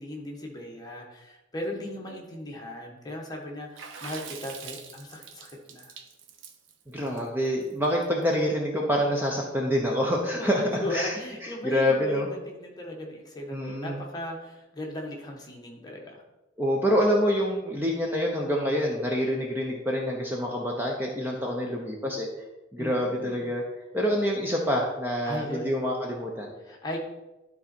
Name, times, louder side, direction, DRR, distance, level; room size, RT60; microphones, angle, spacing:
voice 1, 0.0-5.9 10.4-16.2 22.8-23.5 25.2-25.7 26.6-27.0, left 1 dB, 20° left, -1 dB, 1.3 m, -37 dB
Water / Splash splatter, 3.8-8.2, right 6 dB, 80° right, 0.9 m, -43 dB
voice 2, 6.9-11.2 11.4-12.3 13.5-14.0 16.6-22.4 22.7-23.6 23.9-26.5, equal, 10° right, -1 dB, 0.8 m, -26 dB
12.0 x 4.1 x 4.4 m, 1.0 s
head